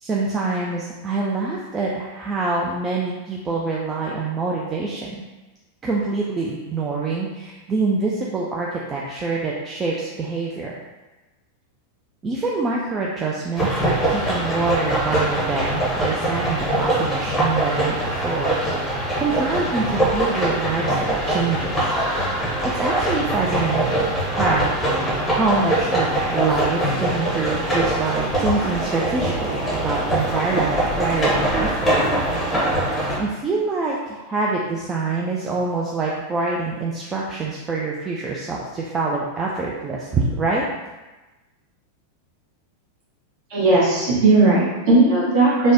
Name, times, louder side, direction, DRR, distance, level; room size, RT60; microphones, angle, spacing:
voice 1, 0.0-5.2 5.8-10.7 12.2-18.6 18.8-21.8 22.6-25.0 25.3-31.9 33.2-40.6, right 3 dB, 20° right, -4 dB, 0.3 m, -25 dB
sound 1, 13.6-33.2, right 1 dB, 5° left, 0.8 m, -23 dB
voice 2, 43.5-45.7, right 2 dB, 45° right, -6 dB, 1.1 m, -16 dB
3.1 x 2.1 x 2.6 m, 1.1 s
figure-of-eight pair, 90°, 0 cm